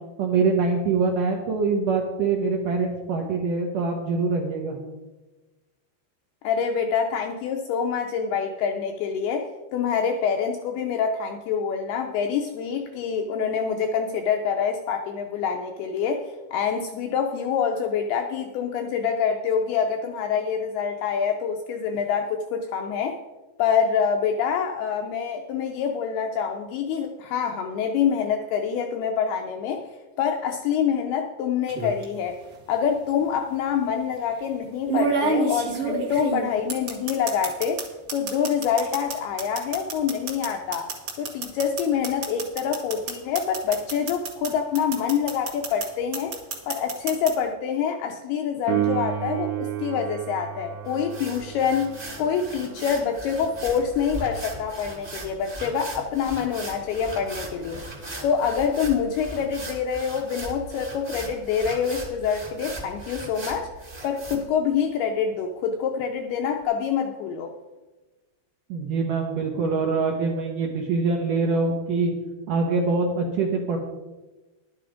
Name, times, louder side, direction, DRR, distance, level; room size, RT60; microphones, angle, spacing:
voice 1, 0.2-4.8 68.7-72.1 72.5-73.8, right 4 dB, 75° right, 1 dB, 2.0 m, -24 dB
voice 2, 6.4-23.2 23.6-29.8 30.2-32.4 32.7-37.9 38.1-40.9 41.2-46.3 46.7-63.7 64.0-67.5, left 7 dB, 80° left, 4 dB, 2.3 m, -26 dB
sound 1, 31.7-32.0 33.2-33.3 34.9-37.8 38.1-44.5 44.7-45.9 46.1-47.3, right 4 dB, 50° right, 1.7 m, -28 dB
Piano, 48.7-59.1 66.6-66.7, right 13 dB, 90° right, 3.1 m, -34 dB
sound 2, 50.8-64.3, right 2 dB, 20° right, 1.4 m, -38 dB
11.5 x 9.2 x 5.0 m, 1.2 s
omnidirectional pair, 5.2 m